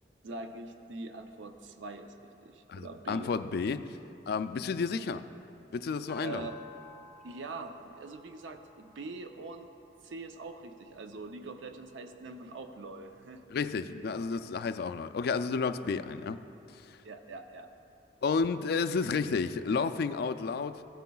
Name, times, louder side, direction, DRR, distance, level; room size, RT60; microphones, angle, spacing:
voice 1, 0.2-3.3 6.2-6.6 7.2-9.7 10.0-13.4 17.0-17.7, right 3 dB, 90° right, 7 dB, 0.5 m, -43 dB
voice 2, 2.7-3.9 4.3-5.2 5.7-6.5 13.5-16.4 18.2-20.8, left 5 dB, 60° left, 11 dB, 0.3 m, -31 dB
sound 1, 6.1-10.7, left 4 dB, 5° left, 0.5 m, -55 dB
15.5 x 9.3 x 2.3 m, 2.8 s
head